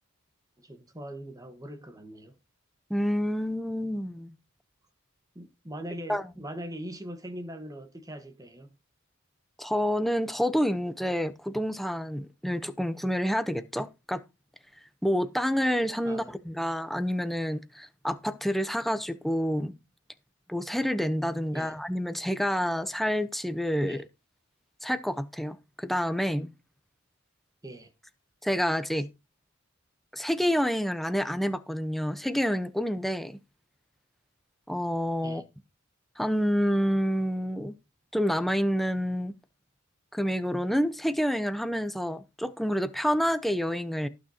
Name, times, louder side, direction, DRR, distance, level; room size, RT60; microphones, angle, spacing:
voice 1, 0.6-2.4 5.3-8.7 16.0-16.3 16.6-16.8 21.5-21.8 23.9-24.0 27.6-27.9 28.9-29.0 35.2-35.4, right 1 dB, 15° right, 1.4 m, -41 dB
voice 2, 2.9-4.3 6.1-6.2 9.6-14.2 15.0-19.7 20.5-24.0 24.8-26.5 28.4-29.1 30.1-33.4 34.7-35.4 36.2-37.7 38.1-39.3 40.1-44.1, equal, ahead, 0.8 m, -28 dB
18.5 x 6.4 x 2.8 m
head